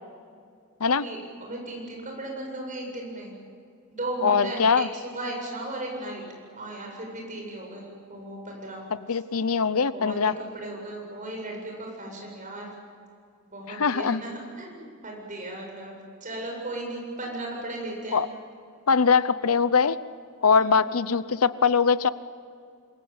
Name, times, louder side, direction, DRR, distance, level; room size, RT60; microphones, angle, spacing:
voice 1, 1.0-3.3 3.9-6.2 6.6-8.8 9.9-10.2 10.5-12.7 13.5-15.9 16.2-18.2 20.6-20.7, right 1 dB, 35° right, 0 dB, 7.9 m, -36 dB
voice 2, 4.2-4.9 9.1-10.3 13.7-14.2 18.1-18.3 18.9-20.0 20.4-22.1, left 5 dB, 80° left, 15 dB, 0.8 m, -22 dB
26.5 x 22.5 x 8.9 m, 2.3 s
head